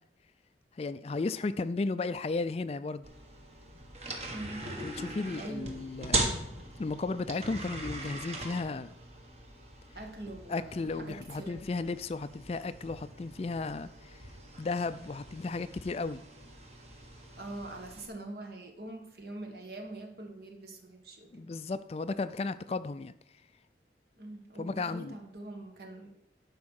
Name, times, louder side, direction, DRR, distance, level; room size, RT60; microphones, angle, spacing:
voice 1, 0.8-3.1 4.8-8.9 10.5-14.2 14.6-16.2 21.3-23.1 24.6-25.2, left 3 dB, 35° left, 13 dB, 0.3 m, -34 dB
sound 1, 3.0-18.1, right 2 dB, 35° right, 1.5 m, -40 dB
voice 2, 4.3-4.7 5.3-5.8 9.9-11.6 17.4-21.5 24.2-26.4, right 2 dB, 60° right, 4 dB, 1.5 m, -44 dB
11.5 x 4.9 x 6.4 m, 0.88 s
head